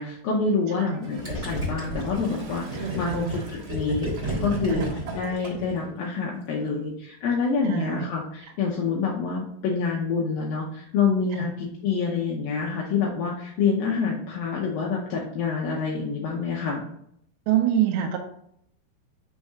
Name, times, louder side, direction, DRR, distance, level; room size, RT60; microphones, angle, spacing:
voice 1, 0.0-4.9 5.2-16.8, left 5 dB, 80° left, -3 dB, 2.1 m, -27 dB
Gurgling / Toilet flush, 0.9-5.8 6.6-6.7, right 2 dB, 60° right, 2.0 m, -40 dB
Gurgling, 1.2-5.9, right 1 dB, 25° right, 1.5 m, -32 dB
voice 2, 2.8-3.5 4.7-4.9 7.6-8.1 8.4-8.5 11.3-11.5 17.5-18.2, right 10 dB, 80° right, 1 dB, 2.6 m, -26 dB
6.3 x 4.2 x 3.6 m, 0.71 s
omnidirectional pair, 5.2 m